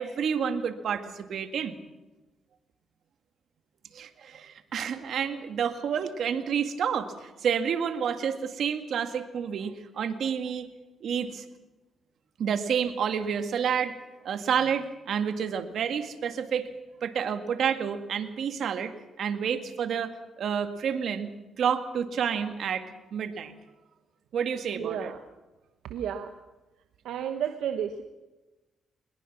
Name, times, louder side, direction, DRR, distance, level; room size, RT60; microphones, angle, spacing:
voice 1, 0.0-1.8 3.9-10.7 11.0-11.5 12.4-14.0 14.2-16.7 17.0-18.9 19.2-21.3 21.6-23.5 24.3-25.1, right 7 dB, 70° right, 8 dB, 1.9 m, -29 dB
voice 2, 24.7-25.2 25.9-26.3 27.0-28.0, right 9 dB, 85° right, 6 dB, 1.1 m, -32 dB
22.0 x 21.0 x 6.1 m, 1.1 s
cardioid pair, 80°, 0 cm